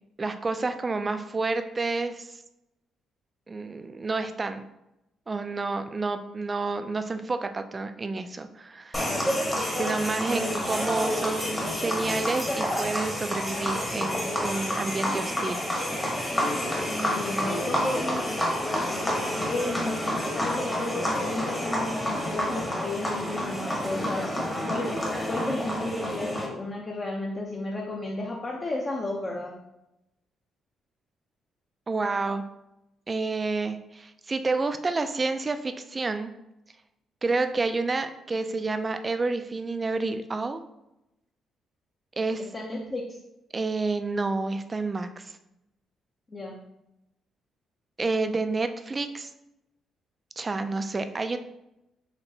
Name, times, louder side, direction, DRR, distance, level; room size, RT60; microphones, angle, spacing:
voice 1, 0.2-2.4 3.5-4.6 5.3-9.1 9.7-15.6 31.9-32.4 33.1-36.3 37.2-40.6 42.2-42.5 43.5-45.4 48.0-49.3 50.4-51.4, right 3 dB, 30° right, 9 dB, 0.3 m, -29 dB
sound 1, 8.9-26.5, left 1 dB, 15° left, 1.0 m, -29 dB
voice 2, 10.2-10.7 16.9-18.3 19.5-24.3 24.7-24.9 25.3-29.5 42.5-43.2 46.3-46.6, left 2 dB, 30° left, -2 dB, 0.6 m, -33 dB
4.3 x 3.0 x 2.8 m, 0.88 s
cardioid pair, 90°, 0 cm